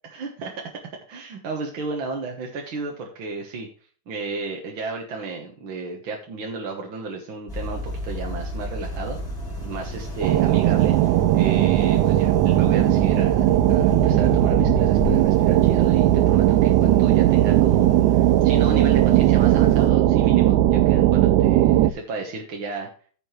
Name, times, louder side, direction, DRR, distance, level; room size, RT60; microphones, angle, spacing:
voice 1, 0.0-0.5 1.1-3.7 4.1-9.2 9.6-10.9 11.3-22.9, right 3 dB, 50° right, 1 dB, 1.8 m, -33 dB
sound 1, 7.5-19.9, left 2 dB, 25° left, 4.4 m, -33 dB
sound 2, 10.2-21.9, right 14 dB, 85° right, 2.1 m, -18 dB
15.0 x 5.4 x 3.2 m, 0.41 s
omnidirectional pair, 3.5 m